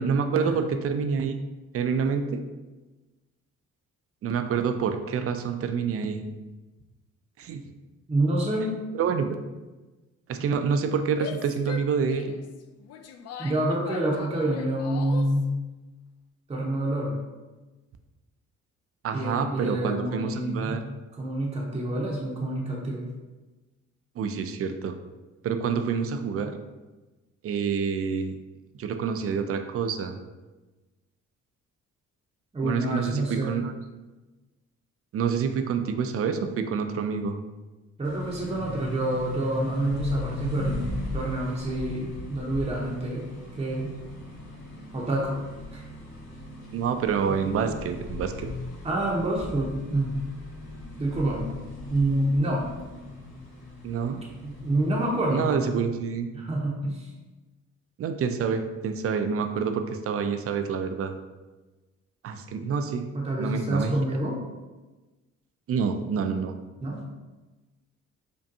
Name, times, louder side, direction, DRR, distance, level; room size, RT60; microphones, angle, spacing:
voice 1, 0.0-1.4 1.7-2.4 4.2-6.2 7.4-7.6 8.9-9.4 10.3-12.3 19.0-20.8 24.2-25.0 25.4-26.5 27.4-28.4 28.8-30.2 32.6-33.7 35.1-37.4 46.7-48.5 53.8-54.2 55.3-56.3 58.0-61.1 62.2-63.1 63.4-63.9 65.7-66.6, right 6 dB, 50° right, 7 dB, 0.4 m, -27 dB
voice 2, 8.1-8.7 13.4-15.5 16.5-17.1 19.1-20.8 21.2-23.1 32.5-33.6 38.0-43.2 43.6-43.9 44.9-45.3 45.7-45.8 48.8-50.2 51.0-51.5 51.9-52.7 54.4-55.6 56.3-57.1 63.1-64.4 66.8-67.0, right 1 dB, 20° right, -4 dB, 0.7 m, -27 dB
Female speech woman speaking / Yell, 11.1-15.4, left 7 dB, 55° left, 0.4 m, -41 dB
sound 1, 38.0-55.7, left 2 dB, 85° left, 1.5 m, -38 dB
5.1 x 2.2 x 2.6 m, 1.2 s
cardioid pair, 90°, 30 cm